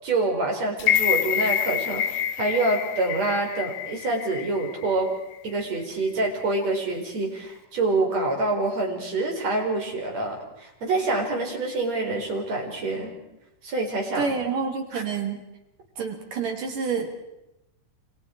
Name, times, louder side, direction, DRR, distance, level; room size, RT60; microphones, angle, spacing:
voice 1, 0.0-5.1 5.4-13.1 13.6-14.3 14.9-15.0, right 2 dB, 55° right, 1 dB, 5.7 m, -26 dB
sound 1, 0.8-4.9 5.3-5.4, left 10 dB, 90° left, 2.8 m, -26 dB
voice 2, 14.2-15.4 16.0-17.1, right 5 dB, 85° right, 3 dB, 4.8 m, -28 dB
29.0 x 25.5 x 4.7 m, 0.90 s
omnidirectional pair, 3.6 m